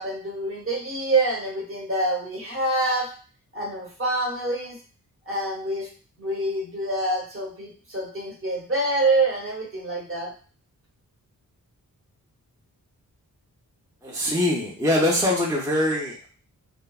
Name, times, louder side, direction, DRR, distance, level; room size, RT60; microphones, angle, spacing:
voice 1, 0.0-3.1 3.5-4.8 5.3-5.9 6.2-10.3, right 2 dB, 40° right, -2 dB, 0.8 m, -26 dB
voice 2, 14.0-16.3, left 1 dB, 10° right, -3 dB, 0.4 m, -23 dB
3.2 x 2.0 x 2.2 m, 0.40 s
wide cardioid pair, 140°, 35 cm